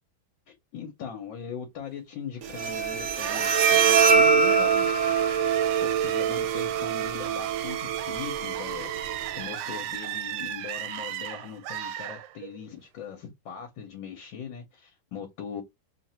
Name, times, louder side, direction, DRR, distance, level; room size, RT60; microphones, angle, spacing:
voice 1, 0.5-5.0 5.8-8.9 9.4-15.6, left 7 dB, 75° left, 1.7 m, -40 dB
Bowed string instrument, 2.4-9.4, right 6 dB, 60° right, 0.7 m, -24 dB
sound 1, 3.2-12.7, right 12 dB, 80° right, 1.2 m, -35 dB
3.5 x 2.5 x 4.3 m
omnidirectional pair, 2.1 m